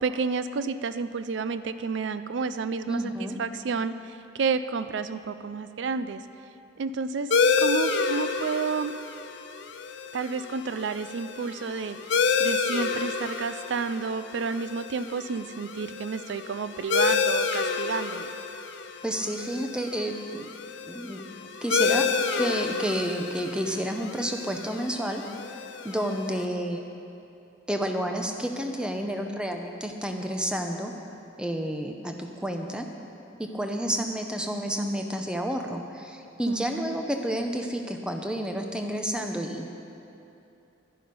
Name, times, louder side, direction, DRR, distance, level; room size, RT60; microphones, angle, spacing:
voice 1, 0.0-6.2 6.8-8.9 10.1-18.3 36.5-37.0, right 5 dB, 70° right, 12 dB, 0.4 m, -31 dB
voice 2, 2.9-3.4 19.0-20.5 20.9-22.1 22.4-25.2 25.8-26.8 27.7-30.9 31.4-32.9 33.4-39.7, equal, 5° right, 3 dB, 0.7 m, -30 dB
sound 1, 7.3-26.5, left 5 dB, 65° left, 0.6 m, -29 dB
11.0 x 10.5 x 5.4 m, 2.7 s
head